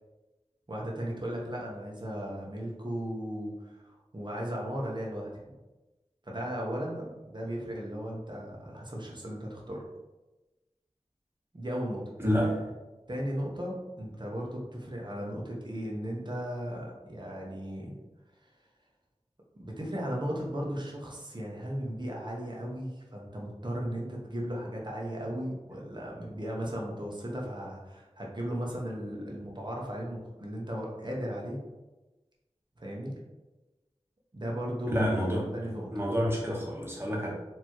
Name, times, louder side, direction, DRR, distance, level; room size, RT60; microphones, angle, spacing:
voice 1, 0.7-5.3 6.2-9.8 11.5-12.0 13.1-18.0 19.6-31.6 32.8-33.1 34.3-35.1 35.5-36.0, equal, 40° right, -2 dB, 1.1 m, -36 dB
voice 2, 12.2-12.7 34.9-37.3, equal, 20° right, -3 dB, 1.3 m, -29 dB
4.5 x 3.0 x 3.0 m, 1.1 s
wide cardioid pair, 45°, 12 cm